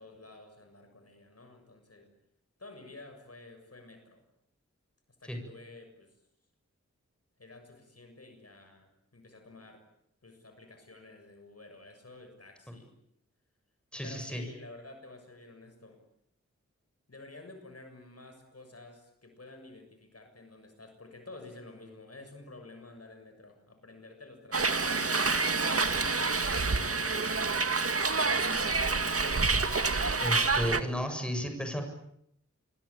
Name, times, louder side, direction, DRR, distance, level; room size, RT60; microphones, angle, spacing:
voice 1, 0.0-2.1 2.6-4.2 5.2-6.1 7.4-9.8 10.2-12.9 14.0-16.0 17.1-26.1 26.5-27.4 28.1-29.5, left 2 dB, 55° left, 6 dB, 6.9 m, -51 dB
voice 2, 13.9-14.4 30.2-31.8, equal, 5° left, 5 dB, 7.6 m, -33 dB
Hiss, 24.5-30.8, right 4 dB, 50° right, 1.9 m, -28 dB
28.0 x 23.5 x 8.8 m, 0.75 s
wide cardioid pair, 75°, 29 cm